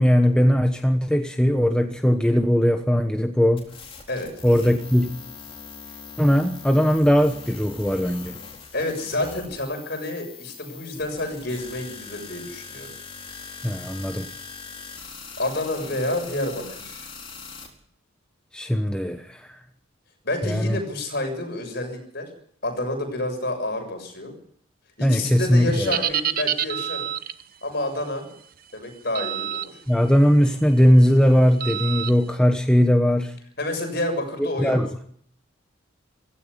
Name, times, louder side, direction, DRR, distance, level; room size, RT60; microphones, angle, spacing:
voice 1, 0.0-3.7 4.4-5.1 6.2-8.4 13.6-14.3 18.5-19.6 20.4-20.8 25.0-26.0 29.9-33.3 34.4-34.9, equal, 5° left, 5 dB, 1.1 m, -19 dB
sound 1, 3.6-17.7, left 5 dB, 25° left, 4.1 m, -41 dB
voice 2, 8.7-12.9 15.4-17.1 20.2-22.3 22.6-24.3 25.0-27.1 27.6-28.3 28.7-29.7 33.6-34.8, left 1 dB, 50° left, 4 dB, 7.1 m, -29 dB
sound 2, 25.7-27.4 29.2-29.7 30.1-30.4 31.6-32.1, right 10 dB, 45° right, 0.9 m, -27 dB
16.5 x 16.5 x 10.0 m, 0.63 s
head